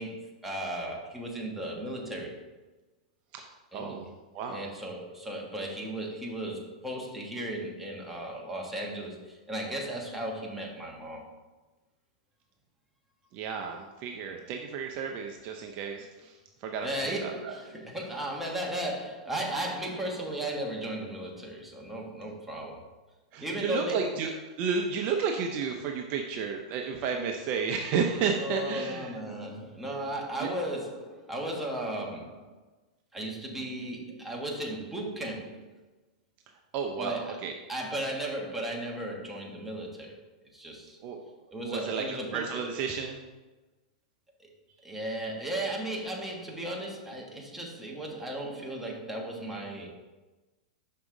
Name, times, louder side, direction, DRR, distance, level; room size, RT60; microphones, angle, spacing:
voice 1, 0.0-2.5 3.7-4.0 4.5-11.3 14.3-14.4 16.8-22.9 23.4-24.1 28.3-32.6 33.1-35.7 37.0-40.2 40.5-41.0 41.5-42.7 44.8-49.9, right 1 dB, 5° right, -1 dB, 1.3 m, -36 dB
voice 2, 3.3-4.1 4.3-4.7 13.3-17.6 23.3-29.2 30.4-30.5 36.7-37.5 41.0-41.2 41.6-43.2, right 6 dB, 40° right, 3 dB, 0.6 m, -32 dB
6.1 x 5.5 x 3.9 m, 1.2 s
hypercardioid pair, 135°, 4 cm